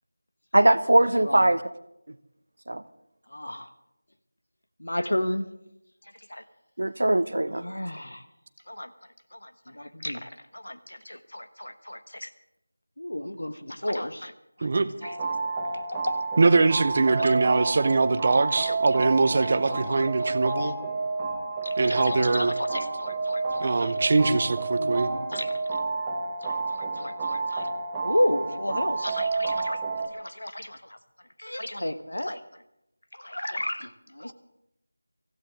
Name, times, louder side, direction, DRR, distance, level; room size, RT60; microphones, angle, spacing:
voice 1, 0.5-1.6 2.1-2.2 2.7-2.8 6.8-7.6, right 1 dB, 60° right, 14 dB, 0.9 m, -21 dB
voice 2, 4.8-5.4 7.6-8.2 8.7-8.9 9.3-12.3 13.0-14.3 14.6-14.7 15.0-15.2 15.7-16.2 17.2-17.4 18.5-18.8 19.7-20.5 21.6-24.0 24.7-25.6 26.4-27.7 28.0-29.8 30.1-31.0 31.4-32.4 33.1-34.3, left 1 dB, 65° left, 10 dB, 1.4 m, -32 dB
sound 1, 15.0-30.1, right 3 dB, 10° right, 1.5 m, -30 dB
voice 3, 16.4-20.7 21.8-22.5 23.6-25.1, right 3 dB, 30° right, 12 dB, 0.7 m, -22 dB
24.0 x 15.5 x 3.6 m, 0.85 s
figure-of-eight pair, 165°, 0 cm